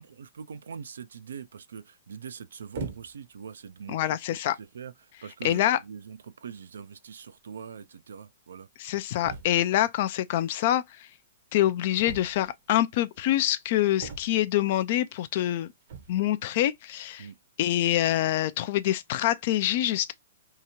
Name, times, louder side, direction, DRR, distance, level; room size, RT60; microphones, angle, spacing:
voice 1, 0.0-8.7 17.2-17.4, right 7 dB, 80° right, 0.3 m, -43 dB
sound 1, 2.7-3.3 4.1-4.3 5.1-5.2 5.4-5.7 7.0-7.1 7.3-7.4 7.6-7.7 9.2-9.8 12.0-12.7 14.0-14.6 15.8-16.3, right 4 dB, 60° right, 0.8 m, -40 dB
voice 2, 3.9-4.6 5.4-5.8 8.8-11.1 11.5-15.7 16.1-17.3 17.6-20.1, left 13 dB, 55° left, 0.4 m, -25 dB
2.8 x 2.3 x 2.9 m
hypercardioid pair, 130°, 0 cm